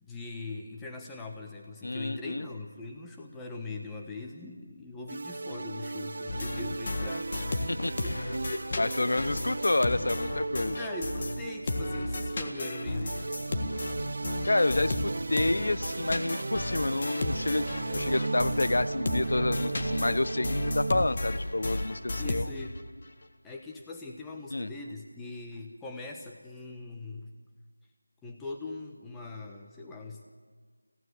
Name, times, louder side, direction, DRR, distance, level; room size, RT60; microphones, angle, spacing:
voice 1, 0.0-7.7 8.0-8.1 8.5-9.1 10.7-13.2 17.8-18.0 19.7-19.9 22.2-22.8 23.4-27.3 28.2-30.2, left 3 dB, 5° left, 1 dB, 1.2 m, -41 dB
voice 2, 1.8-2.5 7.7-8.2 8.8-10.8 14.5-17.7 17.9-22.5 24.5-24.7, left 2 dB, 60° left, 15 dB, 0.8 m, -29 dB
sound 1, 5.1-21.1, right 3 dB, 45° right, 0.6 m, -35 dB
sound 2, 6.3-11.4 11.7-22.8, left 2 dB, 35° left, 1.6 m, -34 dB
25.5 x 15.5 x 8.1 m, 1.5 s
figure-of-eight pair, 170°, 0 cm